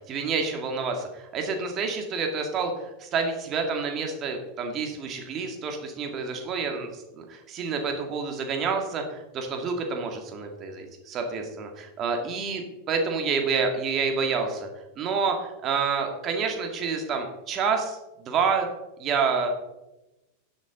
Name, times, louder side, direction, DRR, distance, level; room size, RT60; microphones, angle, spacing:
voice 1, 0.1-14.7 15.0-18.7 19.0-19.5, right 5 dB, 30° right, 3 dB, 2.3 m, -28 dB
11.5 x 10.0 x 3.9 m, 1.0 s
figure-of-eight pair, 90°, 0 cm